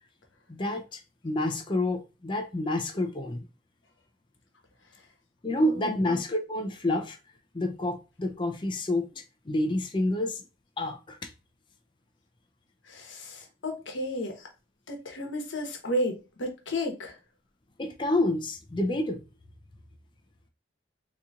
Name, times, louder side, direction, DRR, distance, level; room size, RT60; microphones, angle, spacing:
voice 1, 0.5-3.4 5.4-7.2 7.5-10.4 10.8-11.3 17.8-19.2, left 1 dB, 25° left, 0.4 m, -29 dB
voice 2, 5.6-6.0 12.9-14.5 14.9-17.2, left 1 dB, 85° left, 1.0 m, -33 dB
4.0 x 2.9 x 2.4 m
head